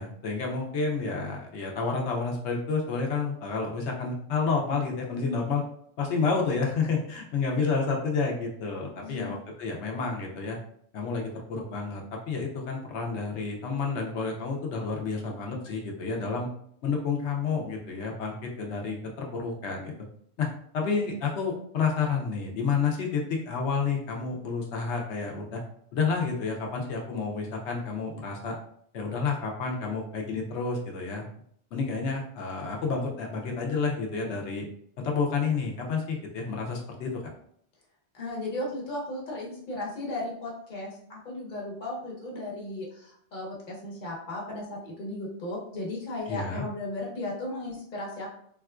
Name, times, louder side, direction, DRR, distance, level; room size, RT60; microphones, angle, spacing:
voice 1, 0.0-5.6 6.0-10.6 10.9-16.5 16.8-19.9 20.4-20.5 20.7-25.6 25.9-28.5 28.9-31.3 31.7-34.7 35.0-37.1 46.3-46.6, left 4 dB, 70° left, 1 dB, 0.9 m, -30 dB
voice 2, 9.0-9.3 38.1-48.3, left 1 dB, 45° left, -3 dB, 1.0 m, -35 dB
3.5 x 2.3 x 2.4 m, 0.65 s
omnidirectional pair, 1.3 m